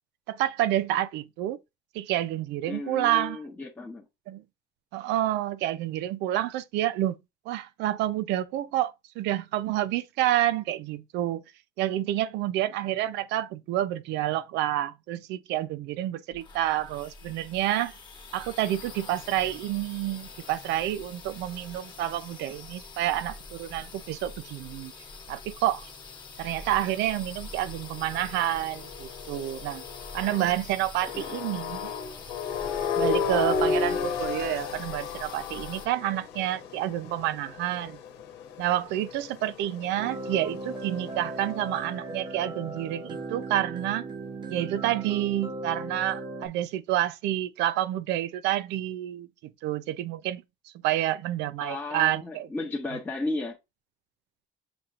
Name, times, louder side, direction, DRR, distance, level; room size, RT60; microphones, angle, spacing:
voice 1, 0.3-1.6 1.9-3.4 4.3-4.4 4.9-7.1 7.5-11.4 11.8-17.9 18.3-24.9 25.3-25.9 26.4-29.8 30.1-31.9 33.0-38.0 38.6-44.1 44.5-52.5, right 13 dB, 90° right, 0.5 m, -29 dB
voice 2, 2.7-4.0 31.1-31.4 51.6-53.6, left 2 dB, 10° left, 0.8 m, -34 dB
sound 1, 16.3-35.9, left 3 dB, 25° left, 1.1 m, -44 dB
sound 2, 27.8-30.6 31.0-41.5, left 6 dB, 90° left, 1.0 m, -34 dB
sound 3, 40.0-46.5, right 2 dB, 25° right, 0.7 m, -37 dB
7.0 x 2.8 x 2.5 m
cardioid pair, 150°, 17 cm